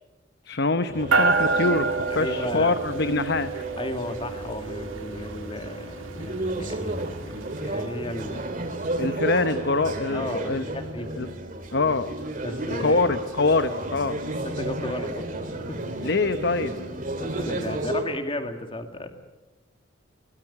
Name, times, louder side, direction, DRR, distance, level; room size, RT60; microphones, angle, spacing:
voice 1, 0.4-3.5 9.0-10.6 11.1-11.3 11.7-12.1 12.8-14.2 16.0-16.8, left 3 dB, 55° left, 11 dB, 0.9 m, -24 dB
sound 1, 0.9-18.0, right 1 dB, 40° right, 3.0 m, -33 dB
sound 2, 1.1-8.8, right 4 dB, 85° right, 3.5 m, -29 dB
voice 2, 2.1-2.7 3.8-8.7 10.1-11.1 12.4-13.0 14.4-15.8 17.2-19.1, left 1 dB, 25° left, 6 dB, 2.4 m, -34 dB
23.5 x 18.5 x 10.0 m, 1.1 s
head